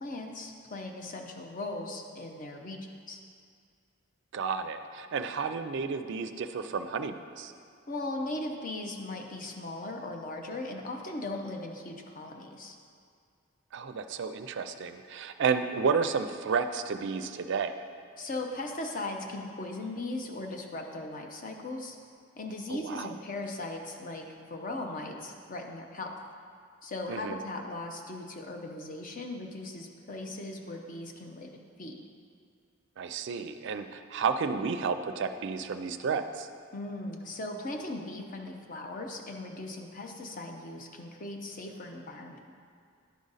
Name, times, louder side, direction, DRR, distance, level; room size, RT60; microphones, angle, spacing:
voice 1, 0.0-2.8 3.1-3.2 7.9-12.8 18.2-22.0 22.4-26.1 26.8-31.9 36.7-42.5, left 2 dB, 40° left, 3 dB, 0.7 m, -38 dB
voice 2, 4.3-7.5 13.7-17.7 22.7-23.1 27.1-27.4 33.0-36.5, right 5 dB, 60° right, 8 dB, 0.4 m, -31 dB
10.5 x 5.1 x 4.0 m, 2.2 s
head